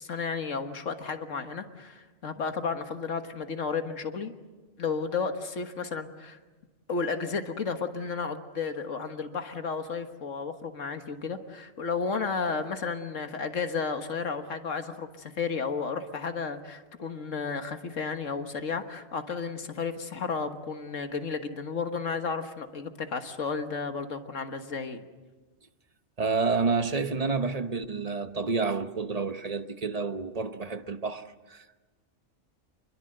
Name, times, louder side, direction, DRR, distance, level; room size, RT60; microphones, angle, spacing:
voice 1, 0.0-4.3 4.8-6.4 6.9-25.1, left 5 dB, 80° left, 1.9 m, -33 dB
voice 2, 26.2-31.8, right 4 dB, 35° right, 1.0 m, -29 dB
27.0 x 22.0 x 7.9 m
omnidirectional pair, 1.3 m